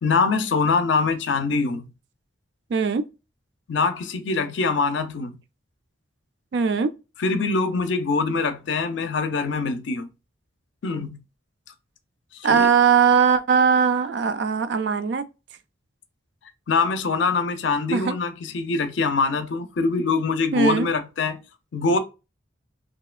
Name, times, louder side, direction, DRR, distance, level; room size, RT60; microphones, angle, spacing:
voice 1, 0.0-1.9 3.7-5.3 7.2-10.1 10.8-11.2 12.5-12.7 16.7-21.4 21.7-22.0, left 4 dB, 70° left, 0.5 m, -23 dB
voice 2, 2.7-3.1 6.5-6.9 12.4-15.2 17.9-18.1 20.5-20.9, right 6 dB, 60° right, 0.3 m, -20 dB
2.9 x 2.7 x 2.4 m
head